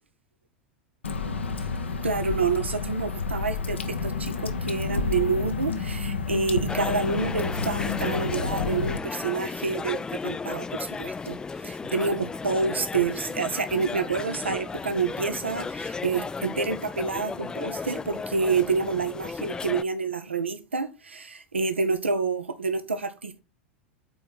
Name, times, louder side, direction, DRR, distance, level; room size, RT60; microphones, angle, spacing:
Water / Drip, 1.0-9.0, left 4 dB, 80° left, 0.8 m, -30 dB
voice 1, 2.0-23.4, right 4 dB, 80° right, 0.7 m, -28 dB
sound 1, 6.7-19.8, left 4 dB, 15° left, 0.3 m, -34 dB
5.4 x 4.4 x 5.6 m
figure-of-eight pair, 85°, 6 cm